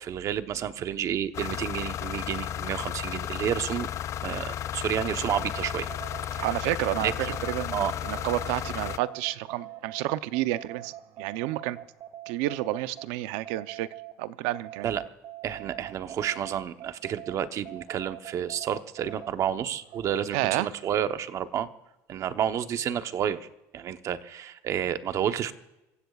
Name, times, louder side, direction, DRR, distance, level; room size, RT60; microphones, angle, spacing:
voice 1, 0.0-3.9 4.2-5.9 6.3-6.4 7.0-7.3 7.7-7.9 14.8-15.0 15.4-21.7 22.1-23.5 23.7-25.5, right 9 dB, 40° right, 10 dB, 1.0 m, -30 dB
sound 1, 1.3-9.0, left 10 dB, 40° left, 0.5 m, -34 dB
sound 2, 5.2-14.1 14.5-20.5, right 13 dB, 60° right, 1.8 m, -45 dB
voice 2, 6.4-11.8 12.3-13.9 14.2-14.9 20.3-20.7, right 15 dB, 75° right, 13 dB, 0.7 m, -30 dB
27.0 x 16.0 x 2.4 m, 0.96 s
cardioid pair, 125°, 8 cm